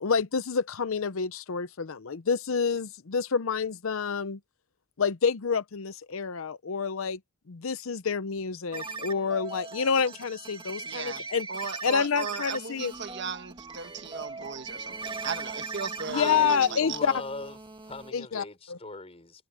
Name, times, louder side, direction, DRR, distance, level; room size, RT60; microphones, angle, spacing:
voice 1, 0.0-4.4 5.0-7.2 7.5-11.5 11.8-12.9 16.1-17.1 18.1-18.8, left 6 dB, 85° left, 0.7 m, -28 dB
sound 1, 8.7-18.1, right 4 dB, 25° right, 2.3 m, -40 dB
voice 2, 10.8-11.2 11.5-17.0, right 5 dB, 55° right, 1.5 m, -37 dB
voice 3, 16.1-17.6 17.9-19.5, left 3 dB, 30° left, 4.8 m, -39 dB
head